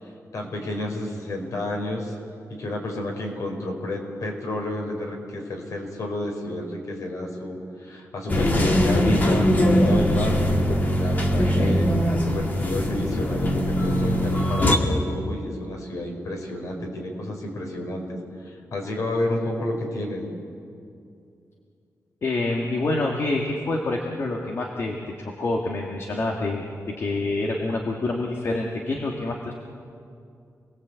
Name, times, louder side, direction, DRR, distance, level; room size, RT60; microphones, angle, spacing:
voice 1, 0.0-2.2 2.5-10.4 11.0-20.3, left 1 dB, 65° left, 2 dB, 5.0 m, -30 dB
sound 1, 8.3-14.8, equal, 30° left, 2.1 m, -21 dB
voice 2, 22.2-29.5, left 2 dB, 45° left, 0 dB, 2.0 m, -27 dB
28.5 x 20.0 x 8.3 m, 2.5 s
wide cardioid pair, 175°, 6 cm